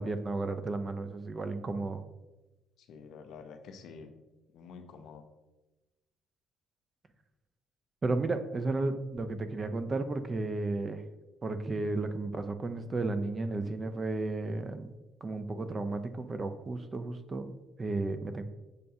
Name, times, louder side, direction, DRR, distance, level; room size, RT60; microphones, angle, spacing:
voice 1, 0.0-2.0 8.0-11.0 11.4-14.9 15.2-18.4, right 3 dB, 35° right, 10 dB, 0.4 m, -33 dB
voice 2, 2.8-4.1 4.5-5.2, left 5 dB, 70° left, 7 dB, 0.5 m, -48 dB
6.5 x 2.2 x 2.7 m, 1.1 s
hypercardioid pair, 60°, 0 cm